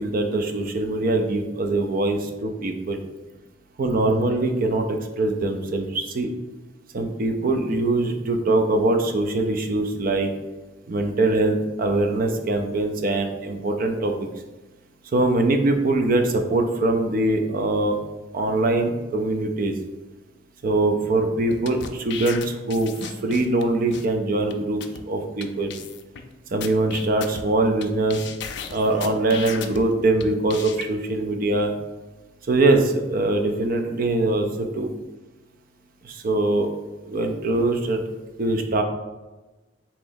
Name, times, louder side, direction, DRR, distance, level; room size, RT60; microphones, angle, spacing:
voice 1, 0.0-3.0 3.8-6.3 6.9-10.3 10.9-14.3 15.1-17.9 18.3-19.7 20.6-22.9 23.2-24.8 25.1-25.7 26.5-28.2 28.7-31.7 32.5-34.9 36.0-36.7 37.1-38.0 38.4-38.8, right 2 dB, 50° right, 5 dB, 0.5 m, -22 dB
sound 1, 21.5-23.6 23.9-24.1 24.5-24.6 24.8-25.0 25.4-25.5 25.7-26.2 26.6-27.8 28.1-29.8 30.2-30.8, left 7 dB, 65° left, 0.4 m, -35 dB
3.8 x 3.0 x 3.9 m, 1.1 s
head